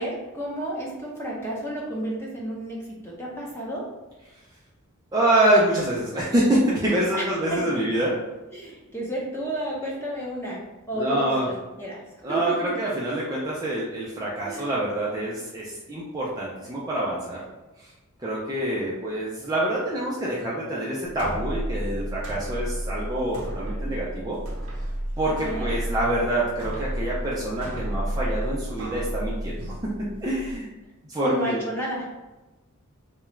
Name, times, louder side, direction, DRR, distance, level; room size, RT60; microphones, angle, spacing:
voice 1, 0.0-3.8 7.1-7.7 8.5-12.0 12.3-12.7 14.4-14.7 25.4-25.7 31.2-32.1, right 1 dB, 10° left, -4 dB, 0.8 m, -31 dB
voice 2, 5.1-8.1 10.9-11.5 12.2-17.4 17.8-17.9 18.2-24.4 25.2-29.9 30.2-30.7 31.1-31.6, right 1 dB, 15° right, -6 dB, 0.5 m, -26 dB
sound 1, 21.1-30.6, right 1 dB, 85° right, 0.7 m, -32 dB
3.8 x 2.3 x 3.1 m, 1.1 s
head